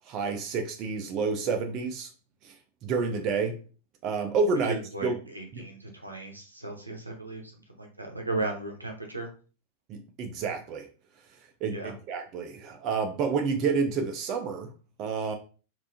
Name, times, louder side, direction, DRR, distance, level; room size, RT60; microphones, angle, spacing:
voice 1, 0.1-2.1 2.4-2.5 2.8-3.6 4.0-4.7 5.0-5.2 5.5-5.6 9.9-10.9 11.6-14.7 15.0-15.3, right 5 dB, 35° right, 0.4 m, -29 dB
voice 2, 4.6-9.3 11.7-11.9, right 2 dB, 85° right, 0.7 m, -36 dB
3.3 x 2.5 x 2.6 m
figure-of-eight pair, 90°, 0 cm